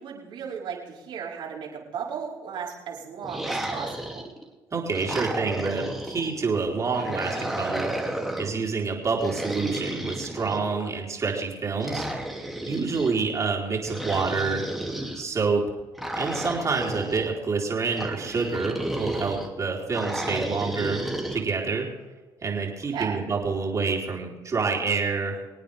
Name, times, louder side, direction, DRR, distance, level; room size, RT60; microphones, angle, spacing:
voice 1, 0.0-4.2 22.9-23.2, right 7 dB, 70° right, -3 dB, 4.8 m, -35 dB
sound 1, 3.2-4.4 4.9-6.3 6.9-8.6 9.2-10.9 11.8-13.1 13.8-15.2 16.0-17.3 17.9-19.5 19.9-21.4, right 1 dB, ahead, 2.8 m, -32 dB
voice 2, 4.7-7.9 8.4-12.1 12.7-14.6 15.1-15.8 16.2-21.0 21.3-21.9 22.4-25.4, right 4 dB, 35° right, -1 dB, 4.3 m, -27 dB
26.0 x 9.1 x 3.6 m, 1.2 s
supercardioid pair, 75°, 9 cm